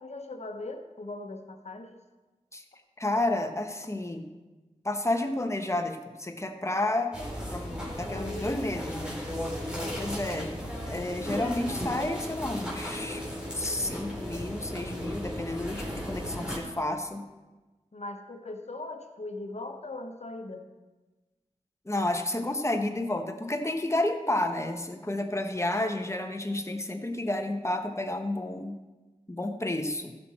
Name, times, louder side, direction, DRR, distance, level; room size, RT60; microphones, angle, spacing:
voice 1, 0.0-2.0 8.1-8.7 9.7-10.0 17.9-20.7, left 2 dB, 60° left, 5 dB, 1.2 m, -40 dB
voice 2, 3.0-4.3 4.8-7.2 7.5-9.2 10.0-10.6 10.9-13.2 13.5-17.2 21.8-28.8 29.3-30.2, left 1 dB, 20° left, 5 dB, 1.2 m, -31 dB
sound 1, 7.1-16.6, equal, 5° right, 4.1 m, -35 dB
15.5 x 6.2 x 4.4 m, 1.2 s
cardioid pair, 40°, 12 cm